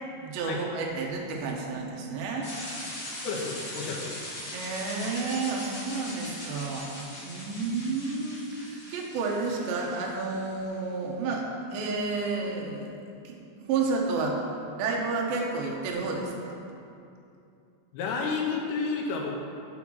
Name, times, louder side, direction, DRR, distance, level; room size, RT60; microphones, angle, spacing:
voice 1, 0.2-2.5 4.5-7.0 7.3-13.0 13.2-14.4 14.8-16.5, right 4 dB, 70° right, 0 dB, 2.2 m, -31 dB
sound 1, 2.4-10.4, left 1 dB, 55° left, 1.1 m, -40 dB
voice 2, 3.2-4.2 17.9-19.3, left 4 dB, 80° left, -1 dB, 2.8 m, -31 dB
7.1 x 5.7 x 6.1 m, 2.6 s
omnidirectional pair, 5.1 m